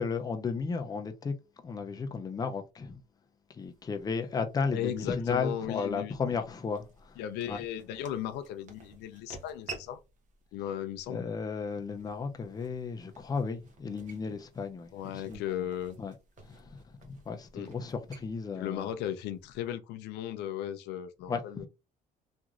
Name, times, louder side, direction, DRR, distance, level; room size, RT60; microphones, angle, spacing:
voice 1, 0.0-1.3 1.6-3.0 3.6-7.2 7.5-7.6 11.1-15.4 16.0-16.1 16.4-16.8 17.1-18.9 21.3-21.7, left 5 dB, 20° left, 0.5 m, -34 dB
sound 1, 3.6-19.7, right 3 dB, 50° right, 0.9 m, -53 dB
voice 2, 4.7-6.4 7.2-10.0 10.5-11.3 14.9-16.0 17.5-17.7 18.6-21.7, left 11 dB, 85° left, 0.4 m, -36 dB
2.9 x 2.5 x 2.4 m
cardioid pair, 110°, 17 cm